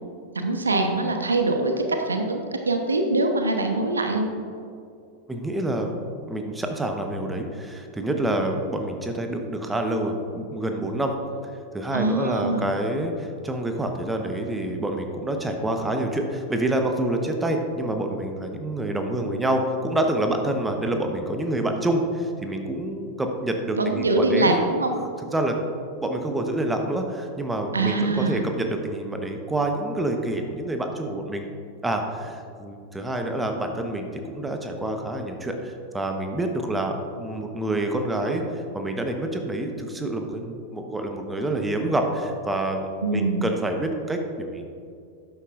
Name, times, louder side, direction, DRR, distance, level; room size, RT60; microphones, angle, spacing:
voice 1, 0.3-4.3 11.9-12.7 23.8-24.9 27.7-28.4 43.0-43.4, right 2 dB, 75° right, 5 dB, 0.9 m, -23 dB
voice 2, 5.3-5.9 6.3-11.2 11.7-24.7 25.3-25.6 26.0-31.5 31.8-38.4 38.7-44.6, right 1 dB, 10° right, 4 dB, 1.0 m, -27 dB
12.5 x 9.4 x 2.5 m, 2.4 s
figure-of-eight pair, 90°, 0 cm